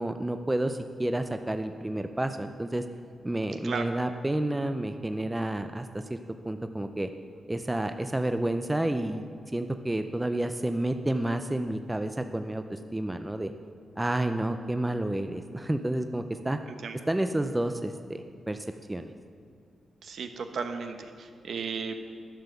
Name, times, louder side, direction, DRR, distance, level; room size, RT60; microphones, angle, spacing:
voice 1, 0.0-2.8 3.2-6.2 6.4-7.1 7.5-9.3 9.5-13.5 14.0-16.6 17.1-19.1, right 1 dB, 10° right, 8 dB, 0.4 m, -30 dB
voice 2, 20.0-22.2, right 5 dB, 65° right, 7 dB, 0.9 m, -35 dB
11.5 x 7.1 x 6.7 m, 2.3 s
wide cardioid pair, 140°, 0 cm